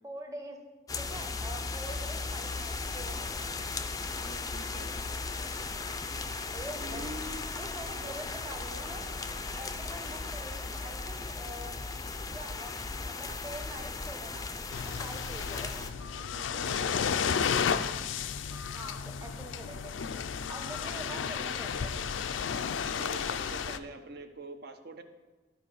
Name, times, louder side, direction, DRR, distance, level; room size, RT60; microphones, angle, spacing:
voice 1, 0.0-0.6 1.0-3.4 6.5-7.1 7.6-9.1 9.5-11.8 12.3-12.7 13.0-14.5 14.9-15.9 18.7-19.9 20.5-22.0, right 1 dB, 15° right, 3 dB, 1.0 m, -44 dB
sound 1, 0.9-15.9, left 3 dB, 20° left, 0.4 m, -37 dB
voice 2, 4.2-4.9 6.8-7.5 8.0-8.1 16.2-17.8 20.9-21.2 23.0-25.0, right 2 dB, 55° right, 7 dB, 0.8 m, -45 dB
sound 2, 14.7-23.8, left 7 dB, 90° left, 0.4 m, -33 dB
12.5 x 4.9 x 4.8 m, 1.2 s
head